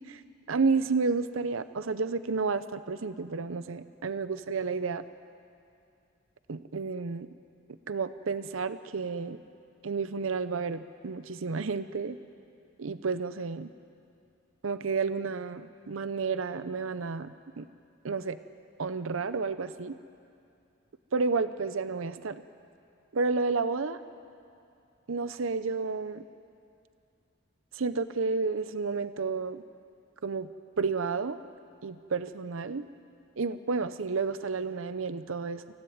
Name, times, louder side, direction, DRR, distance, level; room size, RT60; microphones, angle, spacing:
voice 1, 0.5-5.0 6.5-7.3 7.9-9.4 9.8-12.2 12.8-13.7 14.6-17.7 18.0-18.4 18.8-20.0 21.1-22.4 23.1-24.0 25.1-26.2 27.7-29.6 30.2-30.5 30.8-31.4 31.8-32.9 33.4-35.6, right 4 dB, 80° right, 13 dB, 0.6 m, -31 dB
25.0 x 16.5 x 9.4 m, 2.5 s
head